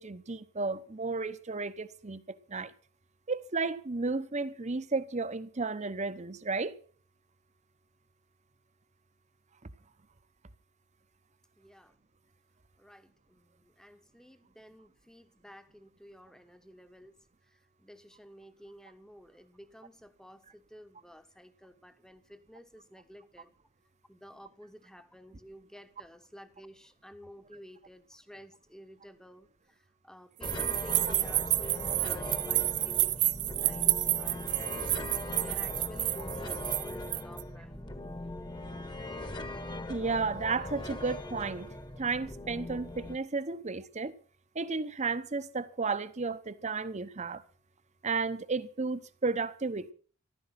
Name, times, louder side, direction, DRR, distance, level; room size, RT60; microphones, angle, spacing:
voice 1, 0.0-2.7 3.3-6.7 31.1-31.2 31.9-32.0 39.9-41.7 42.0-44.1 44.5-47.4 48.0-49.9, right 4 dB, 35° right, 0.9 m, -33 dB
voice 2, 11.6-12.0 12.8-17.1 17.5-23.5 24.1-34.9 35.3-37.9, equal, 5° left, 1.1 m, -52 dB
sound 1, 30.4-43.2, left 1 dB, 20° left, 1.4 m, -40 dB
sound 2, 30.4-37.4, right 17 dB, 60° right, 0.6 m, -30 dB
14.5 x 13.0 x 5.9 m
head